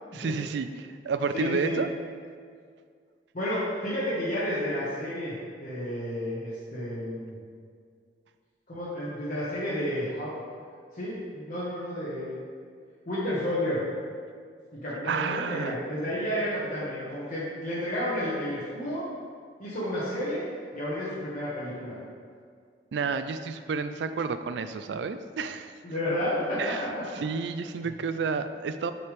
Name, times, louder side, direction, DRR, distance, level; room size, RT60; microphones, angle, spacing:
voice 1, 0.1-1.9 15.1-15.7 22.9-25.7 26.6-26.8 27.2-28.9, right 5 dB, 80° right, 10 dB, 0.4 m, -30 dB
voice 2, 1.3-1.8 3.3-5.3 5.6-7.4 8.7-10.4 10.9-12.4 13.0-13.8 14.7-19.0 19.6-20.4 20.7-22.0 25.8-27.0 27.8-27.9, equal, 50° left, -10 dB, 1.3 m, -31 dB
6.3 x 5.8 x 3.4 m, 2.1 s
head